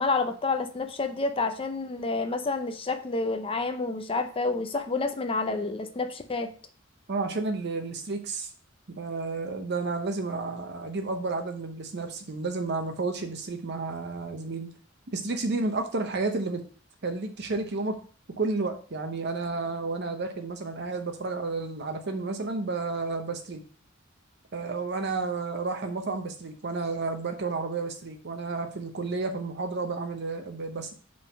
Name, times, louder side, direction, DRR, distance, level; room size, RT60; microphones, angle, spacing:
voice 1, 0.0-6.5, left 3 dB, 25° left, 7 dB, 0.5 m, -29 dB
voice 2, 7.1-8.5 9.0-14.7 15.1-16.6 17.0-18.0 18.4-23.6 24.5-30.9, right 3 dB, 55° right, 5 dB, 0.8 m, -31 dB
5.2 x 3.6 x 5.5 m, 0.41 s
head